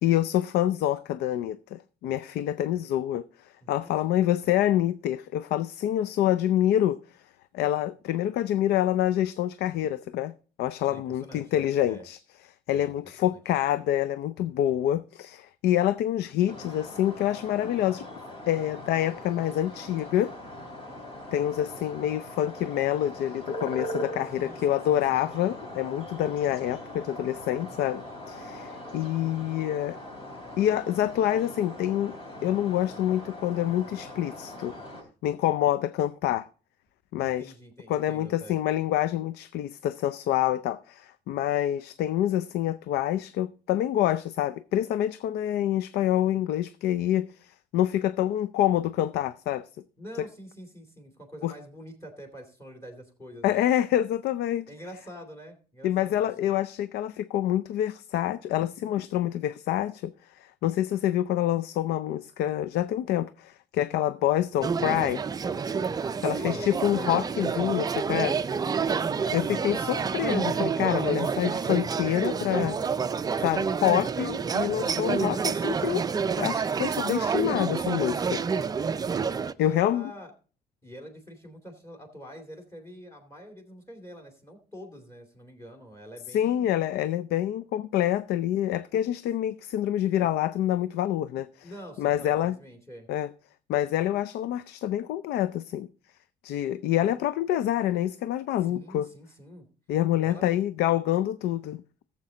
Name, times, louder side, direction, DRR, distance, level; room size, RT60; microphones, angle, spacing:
voice 1, 0.0-7.0 7.5-10.3 10.6-12.2 12.7-18.0 18.5-20.3 21.3-30.0 30.6-32.1 32.4-34.7 35.2-36.5 37.1-37.5 37.9-49.7 50.2-50.3 51.4-51.5 53.4-54.7 55.8-65.2 66.2-68.4 69.3-72.8 73.4-76.0 76.4-78.4 79.6-80.1 86.3-91.7 92.0-92.6 93.1-93.3 93.7-95.9 96.4-99.1 99.9-101.8, left 12 dB, 75° left, 0.4 m, -27 dB
voice 2, 3.6-3.9 10.9-12.1 12.7-13.4 24.3-25.3 37.2-38.6 50.0-53.7 54.7-56.5 66.1-67.3 68.6-69.7 71.0-71.4 79.6-80.3 80.8-86.9 91.6-93.1 98.6-99.7 100.2-100.6, equal, 15° left, 2.5 m, -46 dB
sound 1, 16.5-35.0, left 1 dB, 35° left, 3.4 m, -41 dB
sound 2, 64.6-79.5, right 5 dB, 20° right, 0.4 m, -28 dB
14.0 x 7.4 x 3.8 m
cardioid pair, 110°, 17 cm